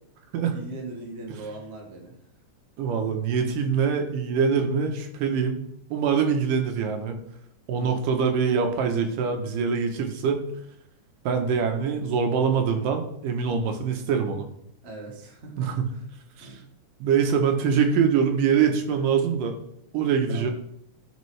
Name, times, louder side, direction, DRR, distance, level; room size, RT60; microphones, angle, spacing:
voice 1, 0.5-2.2 7.7-8.0 14.8-16.1 16.4-16.6 20.3-20.5, right 2 dB, 90° right, -1 dB, 0.5 m, -40 dB
voice 2, 2.8-5.6 5.9-7.2 7.7-10.4 11.3-14.5 15.6-15.8 16.4-16.5 17.0-19.6 19.9-20.5, right 6 dB, 70° right, 5 dB, 2.2 m, -24 dB
15.0 x 5.2 x 3.2 m, 0.73 s
omnidirectional pair, 4.4 m